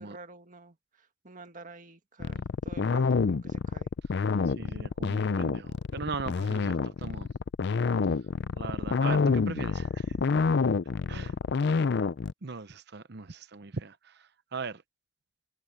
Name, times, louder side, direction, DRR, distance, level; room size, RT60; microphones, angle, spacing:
voice 1, 0.0-3.9, right 2 dB, 40° right, 1.9 m, -49 dB
sound 1, 2.2-12.3, left 4 dB, 60° left, 0.4 m, -27 dB
voice 2, 4.5-7.3 8.5-10.2 11.1-11.3 12.4-14.8, right 4 dB, 55° right, 0.8 m, -39 dB
head